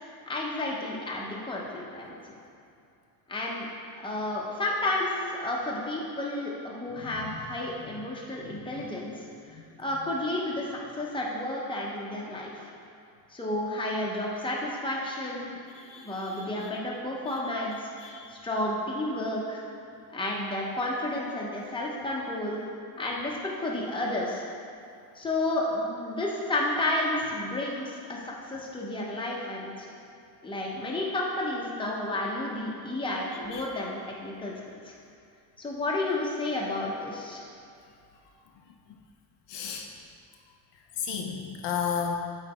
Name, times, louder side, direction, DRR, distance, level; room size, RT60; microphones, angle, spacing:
voice 1, 0.0-2.1 3.3-3.7 4.0-12.7 13.3-15.6 15.9-17.8 18.3-19.6 20.1-22.6 23.0-24.4 25.1-29.9 30.4-34.5 34.9-35.0 35.6-37.4, left 1 dB, 10° left, -3 dB, 0.9 m, -31 dB
voice 2, 7.0-7.5 7.8-8.1 8.4-8.9 9.5-10.1 15.7-16.7 17.3-17.4 18.0-18.2 33.3-33.7 39.5-39.9 41.0-42.2, left 7 dB, 70° left, 2 dB, 0.7 m, -35 dB
8.2 x 3.4 x 4.3 m, 2.6 s
cardioid pair, 125°, 43 cm